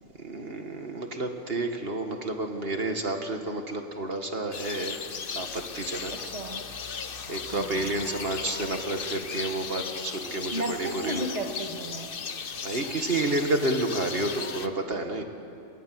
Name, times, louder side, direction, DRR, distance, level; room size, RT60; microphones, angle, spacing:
voice 1, 0.2-5.0 5.4-6.1 7.3-11.3 12.6-15.2, right 2 dB, 55° right, 5 dB, 2.0 m, -30 dB
sound 1, 4.5-14.7, left 6 dB, 50° left, 1.1 m, -36 dB
voice 2, 6.1-6.6 7.5-7.9 10.5-12.1, right 2 dB, 35° right, 4 dB, 1.6 m, -34 dB
29.0 x 22.5 x 7.7 m, 2.6 s
omnidirectional pair, 1.2 m